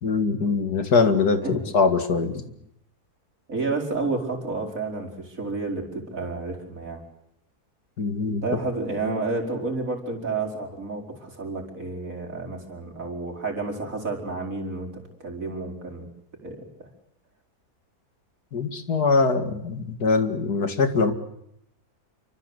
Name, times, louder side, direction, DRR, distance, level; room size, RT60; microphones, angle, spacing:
voice 1, 0.0-2.4 8.0-8.4 18.5-21.1, left 4 dB, 85° left, 8 dB, 2.8 m, -22 dB
voice 2, 3.5-7.0 8.4-16.1 16.4-16.9, right 3 dB, 60° right, 3 dB, 5.3 m, -30 dB
28.0 x 25.0 x 8.1 m, 0.75 s
omnidirectional pair, 1.6 m